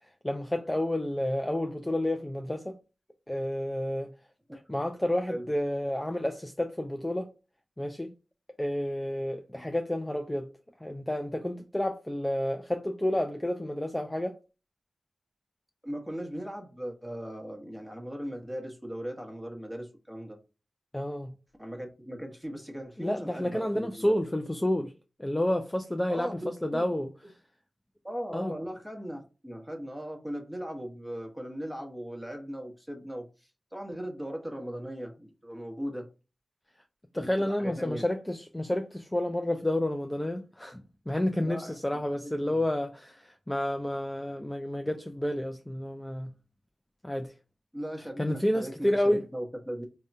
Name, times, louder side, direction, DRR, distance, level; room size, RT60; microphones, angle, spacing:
voice 1, 0.0-2.8 3.3-4.1 4.7-7.3 7.8-8.1 8.6-10.5 10.8-14.4 20.9-21.3 23.0-24.9 25.2-27.1 28.3-28.5 37.1-46.3 47.0-47.3 48.2-49.2, left 1 dB, 15° left, 0.3 m, -30 dB
voice 2, 15.8-20.4 21.6-24.2 26.1-26.9 28.0-36.1 37.1-38.0 41.4-42.6 47.7-49.8, equal, 5° right, 1.0 m, -38 dB
3.5 x 2.1 x 2.6 m
cardioid pair, 45°, 0 cm